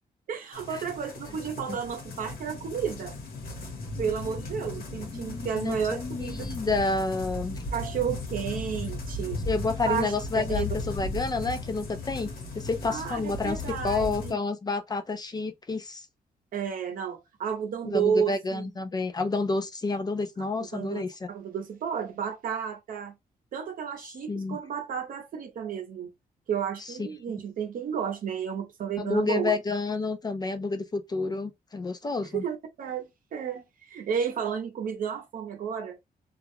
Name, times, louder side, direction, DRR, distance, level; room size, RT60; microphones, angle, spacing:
voice 1, 0.3-3.2 4.0-6.4 7.7-9.5 9.9-10.6 12.9-14.4 16.5-18.7 20.6-23.2 23.5-26.1 26.5-29.5 32.2-36.0, right 7 dB, 65° right, 0.7 m, -32 dB
sound 1, 0.5-14.3, left 2 dB, 70° left, 1.0 m, -36 dB
voice 2, 5.1-7.6 9.5-13.6 13.8-16.1 17.8-21.1 24.3-24.6 26.9-27.1 29.0-32.4, left 3 dB, 25° left, 0.4 m, -29 dB
2.3 x 2.1 x 3.0 m
cardioid pair, 115°, 16 cm